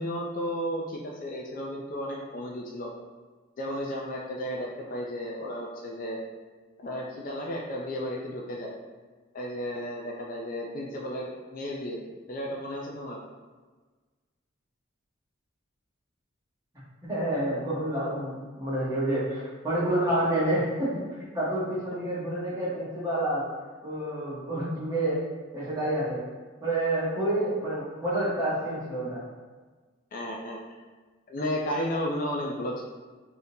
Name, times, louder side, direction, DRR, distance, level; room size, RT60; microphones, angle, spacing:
voice 1, 0.0-2.9 3.6-6.2 6.8-8.7 9.3-13.2 30.1-30.6 31.3-32.8, equal, 40° left, -2 dB, 0.3 m, -33 dB
voice 2, 17.0-20.9 21.2-23.4 23.8-25.2 25.5-26.2 26.6-29.2, right 1 dB, 15° right, -8 dB, 0.9 m, -28 dB
3.5 x 2.7 x 2.7 m, 1.4 s
head